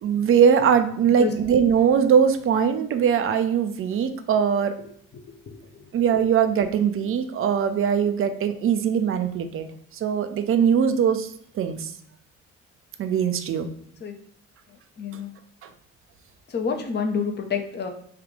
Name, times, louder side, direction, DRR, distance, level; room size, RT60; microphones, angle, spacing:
voice 1, 0.0-4.8 5.9-9.7 10.0-11.3 11.6-11.9 13.0-13.7, right 7 dB, 35° right, 8 dB, 0.5 m, -21 dB
voice 2, 15.0-15.3 16.5-17.9, left 5 dB, 25° left, 5 dB, 0.7 m, -27 dB
3.5 x 2.3 x 3.6 m, 0.64 s
hypercardioid pair, 45°, 38 cm